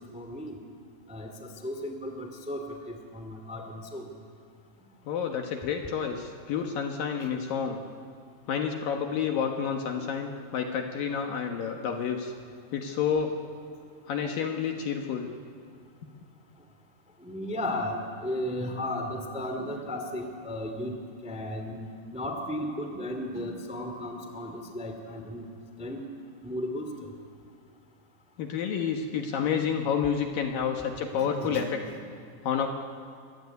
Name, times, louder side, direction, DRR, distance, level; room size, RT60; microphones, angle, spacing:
voice 1, 0.1-0.5 1.1-1.3 1.6-4.1 7.2-7.3 17.2-20.9 21.2-21.8 22.1-25.4 25.8-26.0 26.4-27.1 29.4-29.7 31.2-31.6, left 1 dB, 5° right, 5 dB, 1.5 m, -35 dB
voice 2, 5.1-7.8 8.5-12.3 12.7-13.4 14.1-15.3 28.4-31.8 32.4-32.7, left 7 dB, 65° left, 4 dB, 2.6 m, -29 dB
24.5 x 23.5 x 9.6 m, 2.2 s
omnidirectional pair, 5.0 m